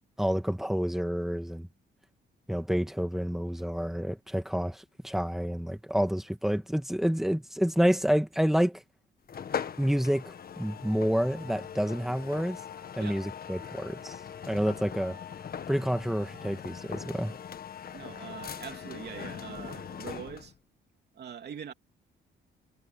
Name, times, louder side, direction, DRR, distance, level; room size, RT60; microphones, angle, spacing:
voice 1, 0.2-1.7 2.5-8.8 9.8-12.6 13.0-14.2 14.5-15.2 15.7-17.4, equal, ahead, 2.3 m, -28 dB
sound 1, 9.3-20.6, left 8 dB, 50° left, 1.5 m, -41 dB
voice 2, 17.9-20.5 21.1-21.7, right 8 dB, 55° right, 3.1 m, -42 dB
cardioid pair, 90°, 20 cm